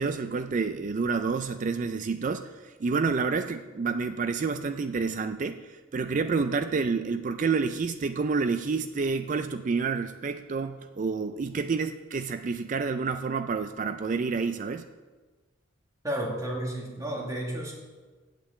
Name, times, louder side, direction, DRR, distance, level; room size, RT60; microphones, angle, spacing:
voice 1, 0.0-14.9, right 4 dB, 35° right, 10 dB, 0.3 m, -29 dB
voice 2, 16.0-17.7, right 1 dB, 15° right, -1 dB, 2.0 m, -32 dB
8.6 x 7.6 x 8.3 m, 1.3 s
head